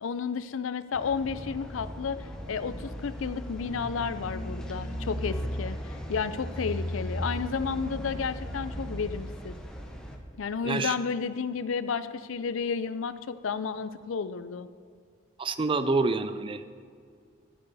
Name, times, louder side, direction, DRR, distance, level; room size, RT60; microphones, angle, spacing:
voice 1, 0.0-9.5 10.4-14.7, left 5 dB, 75° left, 14 dB, 0.5 m, -32 dB
sound 1, 0.9-10.2, equal, 5° left, 1.0 m, -36 dB
voice 2, 15.4-16.7, right 3 dB, 25° right, 12 dB, 0.4 m, -27 dB
11.0 x 9.6 x 4.1 m, 2.2 s
head